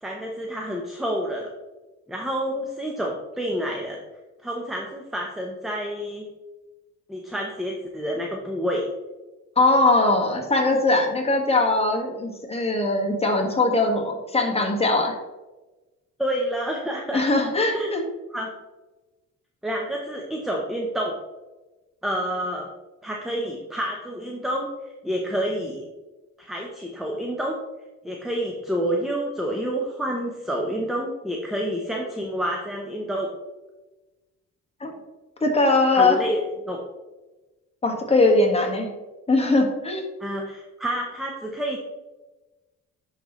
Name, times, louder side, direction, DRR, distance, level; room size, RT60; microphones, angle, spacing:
voice 1, 0.0-1.5 2.1-4.0 4.4-6.3 7.1-8.8 16.2-17.2 17.7-17.9 18.3-18.5 19.6-21.2 22.0-22.7 23.0-24.7 25.0-25.8 26.4-27.6 28.0-33.3 35.9-36.8 40.2-41.8, equal, ahead, 0 dB, 0.8 m, -28 dB
voice 2, 9.6-15.1 17.1-18.0 34.8-34.9 35.4-36.2 37.8-38.9 39.3-40.0, left 2 dB, 20° left, 1 dB, 1.6 m, -21 dB
10.5 x 4.0 x 3.1 m, 1.1 s
cardioid pair, 90°, 30 cm